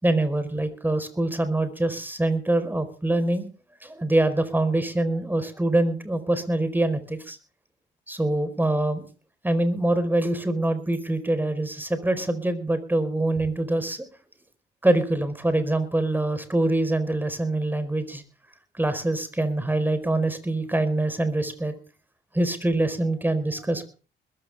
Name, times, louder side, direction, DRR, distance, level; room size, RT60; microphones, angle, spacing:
voice 1, 0.0-3.5 3.8-7.4 8.1-9.1 9.4-14.0 14.8-18.2 18.8-21.7 22.3-23.8, right 1 dB, 10° right, 11 dB, 4.7 m, -24 dB
21.0 x 14.5 x 3.7 m, 0.37 s
cardioid pair, 90°, 20 cm